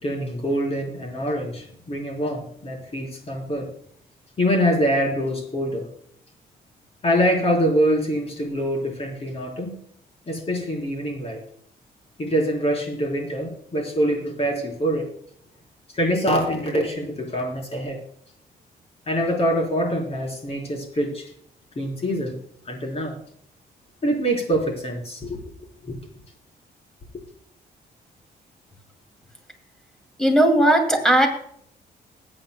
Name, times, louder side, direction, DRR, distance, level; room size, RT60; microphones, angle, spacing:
voice 1, 0.0-3.7 4.4-5.9 7.0-9.7 10.3-11.4 12.2-15.1 15.9-18.0 19.1-21.3 21.8-22.4 22.7-23.2 24.0-25.4 25.8-26.0, equal, 35° left, 1 dB, 3.9 m, -24 dB
voice 2, 30.2-31.3, right 1 dB, 5° left, 4 dB, 2.5 m, -17 dB
21.0 x 8.8 x 2.2 m, 0.65 s
cardioid pair, 105°, 17 cm